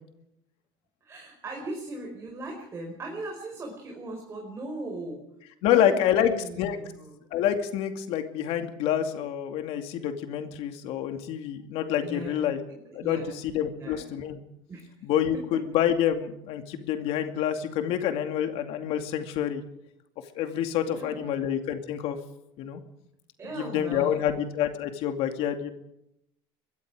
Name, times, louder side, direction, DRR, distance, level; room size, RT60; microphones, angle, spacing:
voice 1, 1.0-5.2 5.6-7.2 12.0-13.4 13.7-14.0 14.7-14.9 15.3-15.6 20.9-21.5 23.4-24.4, right 2 dB, 25° right, 1 dB, 5.2 m, -39 dB
voice 2, 5.6-6.8 7.3-12.6 12.9-14.4 15.0-19.6 20.4-22.2 22.6-22.8 23.5-25.7, left 10 dB, 60° left, 6 dB, 2.5 m, -27 dB
24.0 x 22.0 x 5.0 m, 0.78 s
cardioid pair, 145°, 11 cm